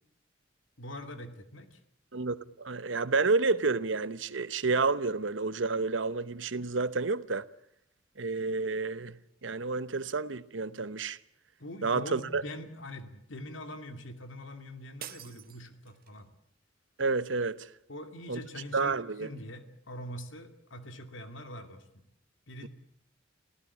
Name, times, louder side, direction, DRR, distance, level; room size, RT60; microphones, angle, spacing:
voice 1, 0.8-1.8 11.6-16.3 17.9-21.9 22.5-22.7, left 1 dB, 75° left, 2.6 m, -43 dB
voice 2, 2.1-7.5 8.2-9.2 9.4-11.2 11.8-12.4 17.0-17.7 18.3-18.4 18.7-19.3, right 3 dB, 70° right, 0.9 m, -30 dB
sound 1, 15.0-16.3, right 10 dB, 50° right, 1.1 m, -47 dB
27.5 x 16.0 x 8.4 m
head